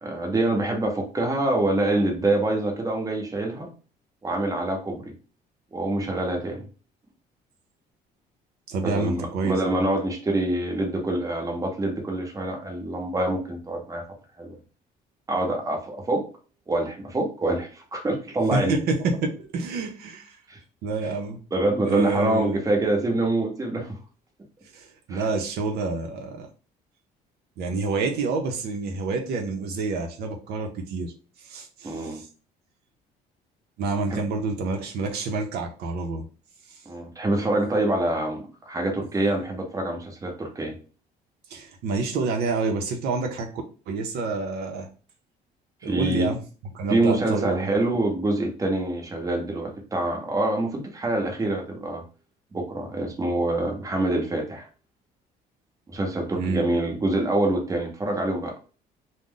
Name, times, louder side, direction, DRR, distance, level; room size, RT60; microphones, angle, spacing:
voice 1, 0.0-3.7 4.2-5.1 5.7-6.7 8.8-14.0 14.4-14.6 15.3-16.2 16.7-18.7 20.5-20.6 21.5-24.0 25.1-25.2 31.8-32.2 34.1-34.2 36.9-40.7 45.8-46.3 46.9-52.0 52.5-54.7 55.9-58.5, right 2 dB, 20° right, 1 dB, 0.8 m, -25 dB
voice 2, 8.7-9.8 18.5-20.4 20.8-21.4 21.8-22.6 24.7-26.5 27.6-31.1 31.4-32.3 33.8-36.2 41.5-44.9 45.8-46.4 46.7-47.7 56.3-56.6, right 3 dB, 70° right, 3 dB, 0.6 m, -28 dB
2.4 x 2.0 x 3.7 m, 0.36 s
cardioid pair, 110°, 17 cm